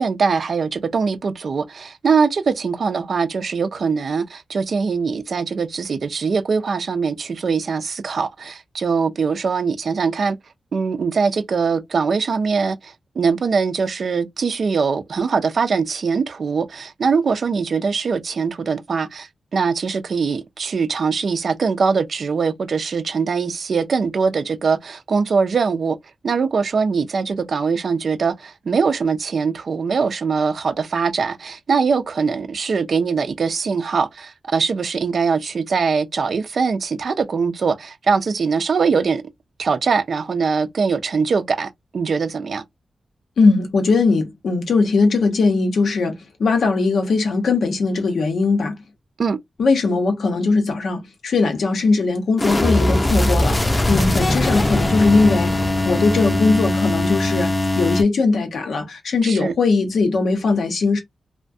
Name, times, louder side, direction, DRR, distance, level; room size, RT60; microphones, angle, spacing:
voice 1, 0.0-10.4 10.7-26.0 26.2-39.2 39.6-42.6 49.2-49.4 59.2-59.5, right 5 dB, 65° right, 0.4 m, -22 dB
voice 2, 43.4-48.8 49.6-53.6 53.9-55.6 55.8-57.5 57.8-61.0, left 4 dB, 85° left, 0.7 m, -19 dB
sound 1, 52.4-58.0, left 1 dB, 25° left, 0.6 m, -20 dB
2.3 x 2.1 x 2.5 m
cardioid pair, 80°, 0 cm